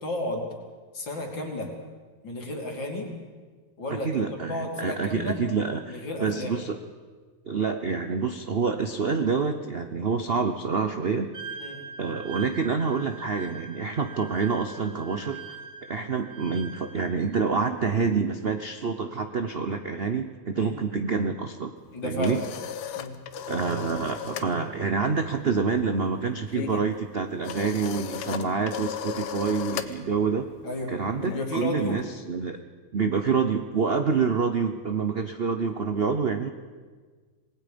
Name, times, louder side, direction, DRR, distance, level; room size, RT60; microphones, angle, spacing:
voice 1, 0.0-0.5 0.9-1.7 2.2-3.1 3.8-5.4 5.9-6.6 11.6-11.8 20.6-20.7 21.9-22.5 23.0-23.1 30.6-30.9 31.2-32.0, left 1 dB, 60° left, 1 dB, 3.7 m, -32 dB
voice 2, 3.9-6.8 7.5-11.3 12.0-15.4 15.9-21.7 22.0-22.4 23.5-30.5 30.9-32.6 32.9-36.5, right 5 dB, 80° right, 7 dB, 0.5 m, -27 dB
Wind instrument woodwind instrument, 11.3-17.3, right 5 dB, 40° right, 2.1 m, -42 dB
sound 1, 21.8-24.5 24.8-25.1 25.4-32.0, left 8 dB, 90° left, 1.9 m, -37 dB
27.0 x 19.5 x 5.2 m, 1.5 s
omnidirectional pair, 2.4 m